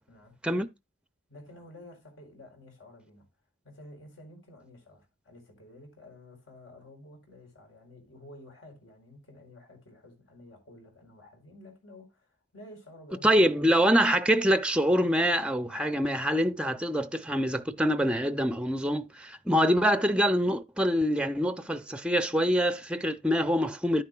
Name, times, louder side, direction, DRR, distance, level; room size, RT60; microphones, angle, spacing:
voice 1, 0.1-0.4 1.3-3.3 3.6-13.5, left 1 dB, 80° left, 4.5 m, -51 dB
voice 2, 13.2-24.0, equal, 5° right, 0.5 m, -25 dB
10.5 x 9.6 x 2.4 m
head